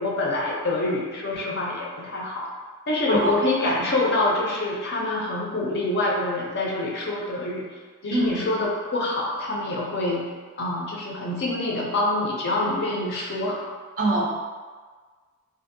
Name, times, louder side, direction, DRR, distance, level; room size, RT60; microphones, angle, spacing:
voice 1, 0.0-2.5 2.9-7.7 8.0-10.3 10.6-13.6, left 2 dB, 50° left, -3 dB, 0.5 m, -26 dB
voice 2, 8.1-8.5 14.0-14.3, right 2 dB, 40° right, -2 dB, 0.4 m, -24 dB
2.6 x 2.6 x 2.5 m, 1.5 s
head